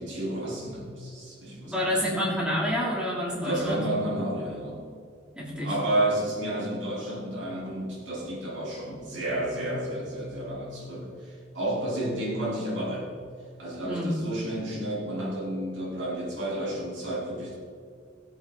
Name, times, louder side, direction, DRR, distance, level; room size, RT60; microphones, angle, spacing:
voice 1, 0.0-2.1 3.4-4.8 5.6-13.2 13.6-17.5, right 1 dB, 70° right, -4 dB, 3.6 m, -31 dB
voice 2, 1.5-3.8 5.3-5.7 13.8-14.2, equal, 5° right, -6 dB, 3.2 m, -28 dB
18.5 x 8.1 x 4.0 m, 2.2 s
head